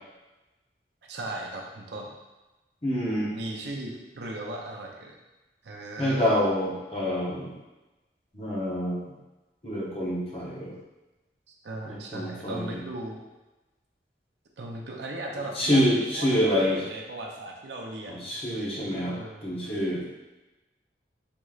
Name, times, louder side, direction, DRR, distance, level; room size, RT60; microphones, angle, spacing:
voice 1, 1.0-2.1 3.3-5.1 5.6-6.2 11.5-13.2 14.6-19.6, right 2 dB, 75° right, -1 dB, 0.5 m, -38 dB
voice 2, 2.8-3.3 6.0-7.5 8.3-9.0 9.6-10.7 11.9-12.8 15.5-16.8 18.1-20.0, equal, 30° left, -6 dB, 0.8 m, -27 dB
3.6 x 3.1 x 2.4 m, 1.1 s
head